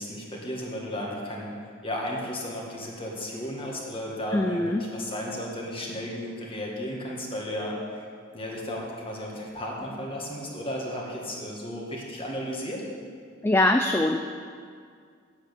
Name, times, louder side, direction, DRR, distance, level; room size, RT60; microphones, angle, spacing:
voice 1, 0.0-1.5 1.8-8.0 8.3-12.9, equal, 30° left, -2 dB, 2.0 m, -34 dB
voice 2, 4.3-4.8 13.4-14.2, left 2 dB, 10° left, 5 dB, 0.4 m, -22 dB
8.9 x 8.1 x 8.2 m, 2.1 s
head